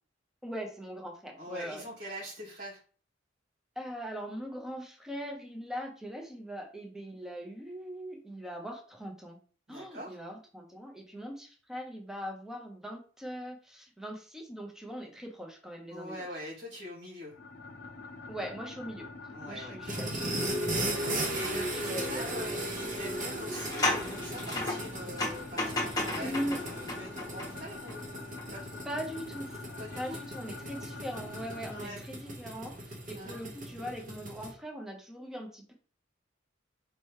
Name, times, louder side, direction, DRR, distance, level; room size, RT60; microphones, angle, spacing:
voice 1, 0.4-1.9 3.8-9.4 9.7-16.3 18.3-19.1 19.5-20.6 21.5-22.3 26.2-26.6 28.8-29.6 29.9-35.7, equal, 5° right, 1 dB, 0.7 m, -40 dB
voice 2, 1.4-2.8 9.7-10.2 15.9-17.3 19.3-20.0 20.9-28.8 29.8-30.2 31.6-32.0 33.1-33.4, equal, 60° right, -4 dB, 2.2 m, -43 dB
sound 1, 17.3-31.9, left 3 dB, 55° left, 0.5 m, -46 dB
sound 2, 19.8-34.5, right 1 dB, 45° right, 1.1 m, -37 dB
sound 3, 21.4-21.6 22.0-22.1 23.4-28.0 28.4-28.5, left 2 dB, 20° left, 1.1 m, -34 dB
4.4 x 3.0 x 3.2 m, 0.40 s
head